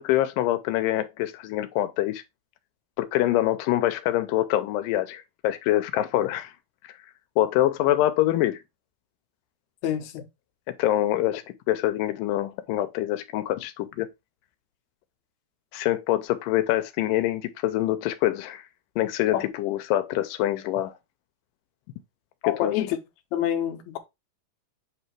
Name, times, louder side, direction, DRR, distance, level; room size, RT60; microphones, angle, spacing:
voice 1, 0.0-2.2 3.0-6.5 6.8-6.9 7.4-8.6 10.8-14.1 15.7-18.6 19.0-21.0 22.4-22.7, left 14 dB, 90° left, 2.2 m, -25 dB
voice 2, 9.8-10.2 19.3-19.5 22.4-23.0 23.3-24.0, left 11 dB, 70° left, 2.2 m, -27 dB
8.2 x 2.8 x 4.5 m
omnidirectional pair, 3.7 m